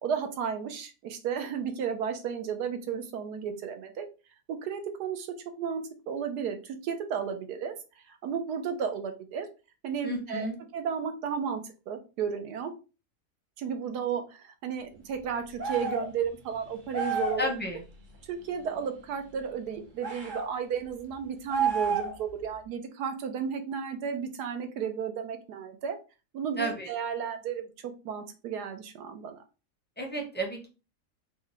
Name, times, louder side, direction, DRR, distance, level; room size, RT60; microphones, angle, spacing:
voice 1, 0.0-4.1 4.5-5.3 5.6-7.7 8.1-9.5 9.8-10.5 10.7-12.7 13.6-17.4 18.3-26.0 26.3-29.4, right 7 dB, 85° right, 6 dB, 1.3 m, -33 dB
voice 2, 10.0-10.6 17.4-17.8 26.6-26.9 30.0-30.7, equal, 10° left, 0 dB, 0.6 m, -32 dB
sound 1, 15.6-16.1 16.9-17.5 20.0-20.5 21.5-22.3, right 5 dB, 45° right, 0.6 m, -29 dB
4.8 x 2.2 x 3.4 m, 0.31 s
omnidirectional pair, 1.7 m